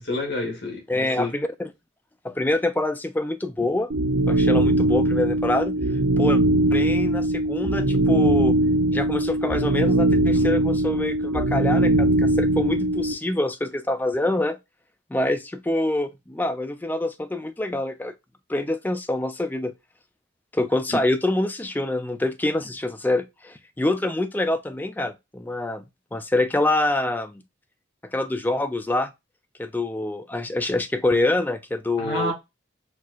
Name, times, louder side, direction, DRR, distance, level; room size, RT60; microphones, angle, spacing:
voice 1, 0.0-1.3 32.0-32.3, left 2 dB, 70° left, 1.3 m, -29 dB
voice 2, 0.9-1.7 2.2-3.9 4.3-5.7 6.2-6.4 6.7-8.6 8.9-14.6 15.1-18.1 18.5-19.7 20.5-25.8 26.1-27.4 28.1-29.1 29.6-32.3, left 2 dB, 10° left, 0.3 m, -25 dB
sound 1, 3.9-13.1, right 1 dB, 90° right, 0.7 m, -21 dB
4.4 x 2.4 x 2.3 m
head